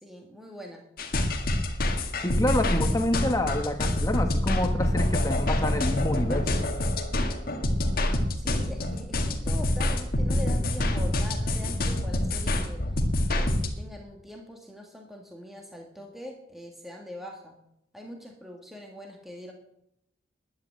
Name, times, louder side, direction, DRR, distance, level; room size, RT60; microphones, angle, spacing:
voice 1, 0.0-0.9 2.1-2.4 8.4-12.8 13.3-17.6 17.9-19.5, left 1 dB, ahead, 1 dB, 1.7 m, -43 dB
sound 1, 1.0-13.7, left 1 dB, 50° left, 1.8 m, -26 dB
voice 2, 2.2-6.7, left 1 dB, 20° left, 6 dB, 1.3 m, -28 dB
11.5 x 9.0 x 8.9 m, 0.80 s
head